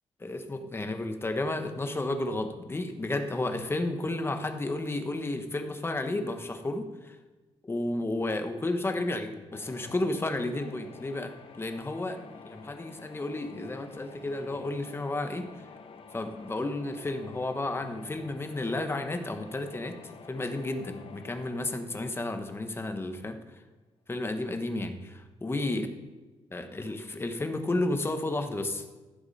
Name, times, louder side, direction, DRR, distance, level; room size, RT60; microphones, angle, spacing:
voice 1, 0.2-7.2 7.6-11.3 11.6-15.5 16.1-19.9 20.3-23.4 24.1-25.9 26.5-28.8, left 2 dB, 20° left, 6 dB, 1.2 m, -32 dB
sound 1, 9.5-23.4, left 5 dB, 55° left, 1.1 m, -50 dB
15.0 x 6.8 x 4.3 m, 1.2 s
cardioid pair, 100°, 11 cm